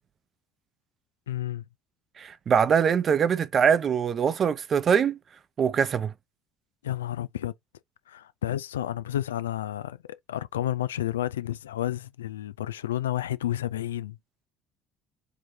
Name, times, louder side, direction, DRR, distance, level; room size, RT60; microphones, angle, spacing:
voice 1, 1.3-1.7 6.8-7.5 8.1-10.0 10.3-14.2, left 12 dB, 90° left, 0.3 m, -31 dB
voice 2, 2.2-5.2 5.6-6.1, right 7 dB, 45° right, 0.6 m, -23 dB
4.8 x 3.0 x 2.7 m
hypercardioid pair, 60°, 0 cm